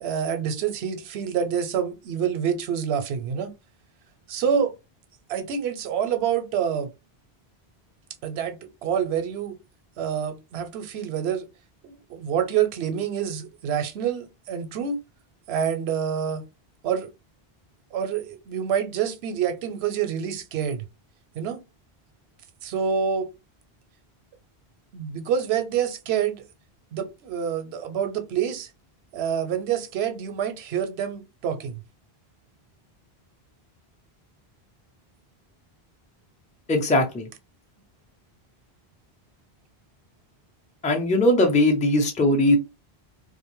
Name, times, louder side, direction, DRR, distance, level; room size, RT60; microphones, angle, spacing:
voice 1, 0.0-3.5 4.3-4.7 5.3-6.9 8.2-9.6 10.0-11.5 11.8-15.0 15.5-16.4 16.8-17.1 17.9-20.8 21.4-21.6 22.6-23.3 24.9-26.4 26.9-28.7 29.1-31.8, right 8 dB, 85° right, 0.8 m, -27 dB
voice 2, 36.7-37.3 40.8-42.6, left 1 dB, 10° left, 0.3 m, -20 dB
2.5 x 2.1 x 2.9 m
omnidirectional pair, 1.0 m